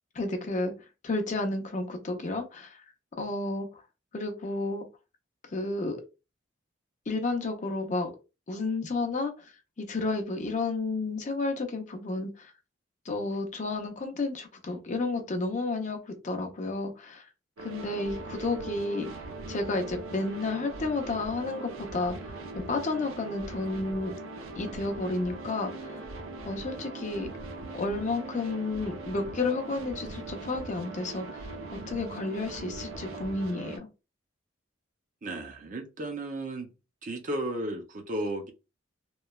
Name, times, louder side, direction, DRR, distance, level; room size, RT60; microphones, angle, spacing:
voice 1, 0.1-0.7 1.0-2.8 3.2-3.7 4.1-4.8 5.5-6.0 7.1-8.1 8.5-9.3 9.8-12.5 13.1-17.3 17.6-19.1 19.5-24.1 24.6-25.9 26.5-27.3 27.7-33.9, left 3 dB, 35° left, 4 dB, 0.5 m, -31 dB
sound 1, 17.6-33.8, right 2 dB, 90° right, 0.5 m, -40 dB
voice 2, 35.2-36.7 37.0-38.5, right 1 dB, 40° right, 4 dB, 0.5 m, -34 dB
3.0 x 2.1 x 2.2 m, 0.28 s
head